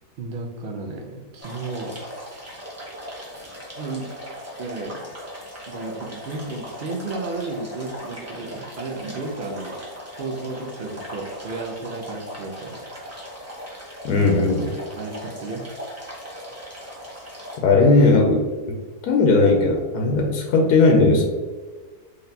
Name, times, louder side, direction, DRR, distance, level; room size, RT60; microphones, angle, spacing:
voice 1, 0.2-2.4 3.8-4.1 4.6-5.1 5.7-9.8 10.1-12.8 14.9-15.6, right 3 dB, 85° right, 1 dB, 0.4 m, -33 dB
sound 1, 1.4-17.6, equal, 15° right, 0.7 m, -38 dB
voice 2, 14.0-14.7 17.6-18.4 19.0-21.2, left 3 dB, 80° left, 2 dB, 1.1 m, -17 dB
4.0 x 3.2 x 2.7 m, 1.3 s
omnidirectional pair, 1.6 m